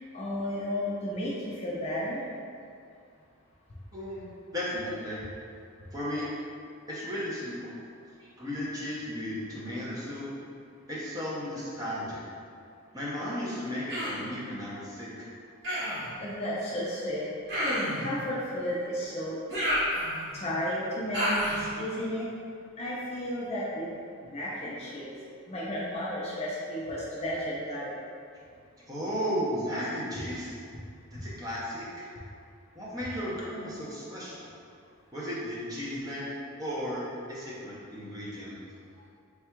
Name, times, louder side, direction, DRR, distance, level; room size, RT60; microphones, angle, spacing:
voice 1, 0.1-2.2 16.2-17.3 18.0-19.4 20.3-22.3 22.8-23.9 24.2-25.1 25.5-28.0, equal, 30° left, -6 dB, 0.5 m, -33 dB
voice 2, 3.9-5.2 5.9-6.3 6.9-7.8 8.2-10.3 10.9-12.2 12.9-15.3 28.9-30.6 31.1-31.9 32.7-34.5 35.1-38.6, equal, 15° right, -8 dB, 0.7 m, -35 dB
Human voice, 13.9-14.3 15.6-16.1 17.5-18.1 19.5-20.4 21.1-21.7, equal, 55° right, 1.1 m, -29 dB
3.4 x 2.3 x 4.4 m, 2.3 s
head